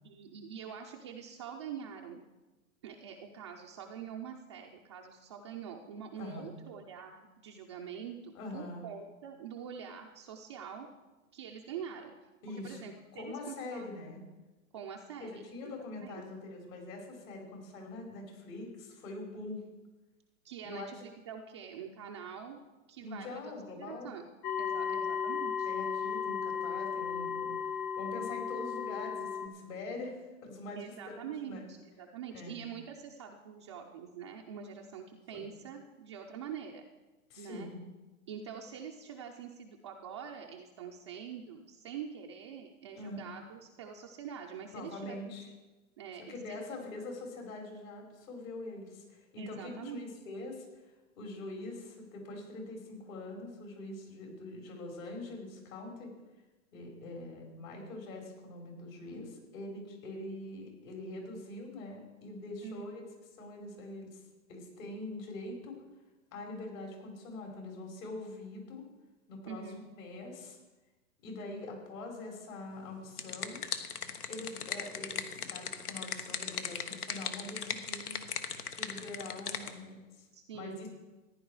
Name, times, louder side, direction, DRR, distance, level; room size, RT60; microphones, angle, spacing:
voice 1, 0.0-2.2 2.8-10.9 11.3-12.3 12.6-13.9 14.7-16.2 20.4-22.6 22.9-23.4 23.8-24.3 24.6-25.7 30.7-36.9 37.4-37.7 38.3-45.3 46.0-46.6 49.4-50.1 62.6-62.8 69.5-69.9 80.3-80.9, right 7 dB, 20° right, 1 dB, 0.4 m, -45 dB
voice 2, 8.3-8.9 12.4-12.8 13.1-14.2 15.2-19.6 20.6-20.9 23.0-24.1 24.6-25.0 25.6-31.6 32.3-32.7 35.3-35.5 37.3-37.8 42.9-43.2 44.7-45.5 46.3-56.1 56.7-63.1 63.4-64.2 64.5-65.8 66.3-68.8 69.3-69.7 70.0-70.6 71.2-73.6 74.2-78.1 78.7-80.3 80.5-80.9, left 2 dB, 60° left, 1 dB, 4.6 m, -44 dB
sound 1, 24.4-29.5, left 7 dB, 30° left, 0.6 m, -35 dB
sound 2, 72.9-79.7, left 7 dB, 80° left, 1.3 m, -38 dB
14.5 x 10.0 x 4.7 m, 1.1 s
hypercardioid pair, 135°, 45 cm